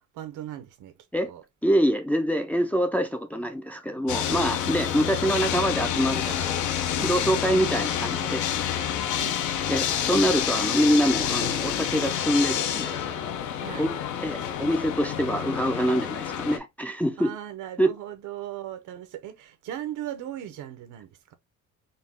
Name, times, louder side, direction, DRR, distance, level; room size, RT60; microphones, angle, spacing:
voice 1, 0.1-0.9 1.3-1.4 9.2-9.4 13.6-13.9 17.2-21.3, right 12 dB, 80° right, 0.8 m, -37 dB
voice 2, 1.6-6.7 7.0-8.5 9.7-13.0 13.8-13.9 14.2-17.3 17.8-17.9, equal, 5° left, 0.4 m, -25 dB
sound 1, 4.1-16.6, left 9 dB, 75° left, 0.7 m, -28 dB
4.0 x 2.3 x 3.5 m
cardioid pair, 150°, 30 cm